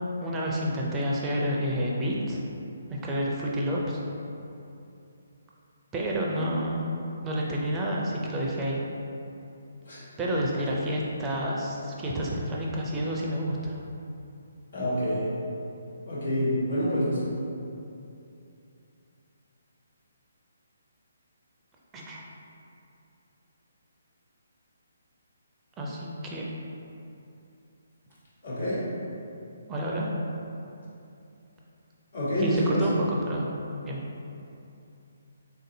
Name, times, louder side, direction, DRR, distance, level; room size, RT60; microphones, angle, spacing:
voice 1, 0.2-2.4 2.9-4.0 5.9-6.9 7.2-8.8 10.2-13.8 21.9-22.3 25.8-26.5 29.7-30.1 32.4-33.5 33.8-34.0, equal, 15° right, -3 dB, 0.4 m, -29 dB
voice 2, 14.7-15.3 16.0-17.2 28.4-28.8 32.1-32.9, equal, 70° left, -10 dB, 1.3 m, -27 dB
3.6 x 2.6 x 2.6 m, 2.7 s
figure-of-eight pair, 140°, 0 cm